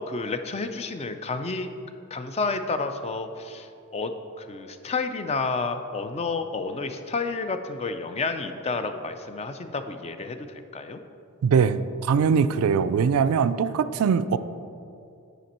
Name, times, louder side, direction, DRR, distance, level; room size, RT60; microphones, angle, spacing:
voice 1, 0.0-1.7 2.1-4.1 4.4-11.0, left 4 dB, 30° left, 8 dB, 0.4 m, -30 dB
voice 2, 11.4-14.4, right 6 dB, 80° right, 13 dB, 0.3 m, -22 dB
9.2 x 5.2 x 4.2 m, 2.6 s
head